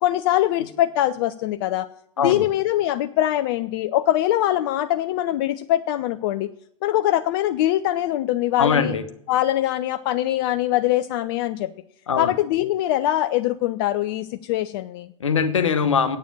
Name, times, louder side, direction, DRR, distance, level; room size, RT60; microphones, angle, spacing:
voice 1, 0.0-1.9 2.2-6.5 6.8-9.0 9.3-11.7 12.2-15.1, left 13 dB, 45° left, 10 dB, 0.4 m, -22 dB
voice 2, 8.6-9.0 12.1-12.3 15.2-16.2, left 6 dB, 70° left, 11 dB, 1.1 m, -21 dB
8.8 x 7.0 x 8.5 m, 0.69 s
figure-of-eight pair, 90°, 16 cm